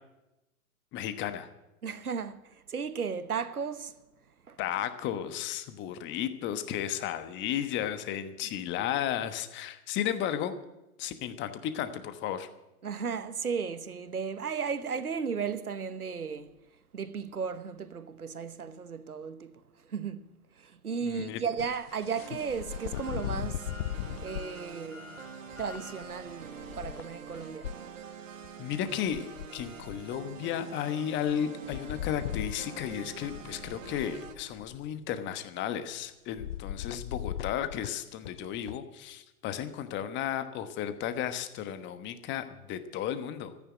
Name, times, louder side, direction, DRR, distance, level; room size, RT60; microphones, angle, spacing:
voice 1, 0.9-1.5 4.6-10.5 11.0-12.5 21.0-21.4 28.6-29.3 29.5-43.5, left 10 dB, 25° left, 1.2 m, -34 dB
voice 2, 1.8-3.9 4.5-4.6 12.8-16.5 16.9-19.6 19.9-20.3 20.6-23.7 24.2-25.1 25.6-27.7, right 6 dB, 85° right, 1.1 m, -35 dB
sound 1, 21.6-24.5 25.5-27.7 28.4-28.5 28.7-30.2 31.3-31.4 31.7-34.9 36.4-38.8, left 12 dB, 45° left, 0.5 m, -38 dB
sound 2, 21.8-27.1, left 4 dB, 70° left, 5.4 m, -52 dB
sound 3, 22.2-34.4, right 6 dB, 65° right, 1.8 m, -46 dB
14.0 x 9.7 x 9.3 m
figure-of-eight pair, 110°, 43 cm